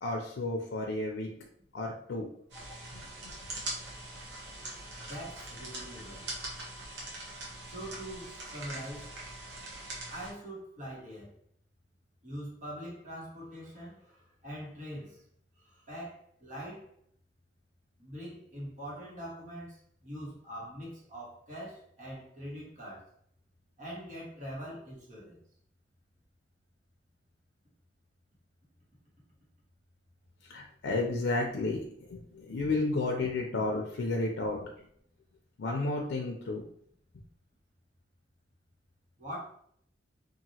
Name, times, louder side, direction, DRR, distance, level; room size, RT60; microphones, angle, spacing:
voice 1, 0.0-1.3 1.7-2.3 30.4-34.7 35.6-36.6, left 2 dB, 85° left, 1 dB, 0.4 m, -32 dB
sound 1, 2.5-10.3, right 2 dB, 85° right, 1.0 m, -42 dB
voice 2, 4.9-6.3 7.7-9.1 10.1-11.3 12.2-15.2 15.6-16.9 18.0-23.1 23.8-25.4 39.2-39.4, equal, 45° right, -5 dB, 1.2 m, -43 dB
2.8 x 2.4 x 2.8 m, 0.66 s
head